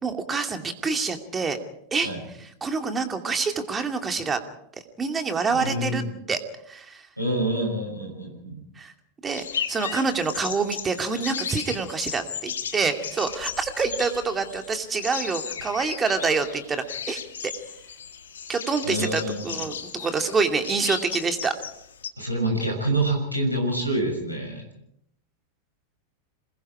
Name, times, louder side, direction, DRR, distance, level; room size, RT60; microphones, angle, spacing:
voice 1, 0.0-1.6 1.9-2.1 2.4-4.4 5.0-6.4 6.7-7.1 8.8-8.9 9.2-17.5 18.5-21.5, right 4 dB, 20° right, 6 dB, 2.5 m, -27 dB
voice 2, 5.5-6.1 7.2-8.6 18.8-19.6 22.2-24.7, right 1 dB, 90° left, 1 dB, 6.8 m, -27 dB
sound 1, 9.3-22.1, left 7 dB, 65° left, 1.8 m, -36 dB
27.5 x 20.5 x 4.9 m, 0.72 s
figure-of-eight pair, 90°, 0 cm